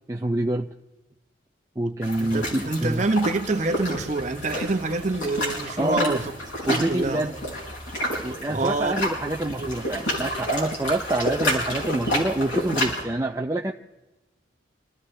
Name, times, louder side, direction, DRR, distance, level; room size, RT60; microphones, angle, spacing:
voice 1, 0.1-0.7 1.8-3.1 5.8-6.2 6.7-7.3 8.2-13.7, right 1 dB, 15° right, 0.4 m, -26 dB
sound 1, 2.0-13.0, equal, 80° left, 5.9 m, -30 dB
voice 2, 2.2-6.3 6.6-7.5 8.5-8.9 9.6-9.9, right 2 dB, 40° right, 1.0 m, -27 dB
27.0 x 14.5 x 3.3 m
head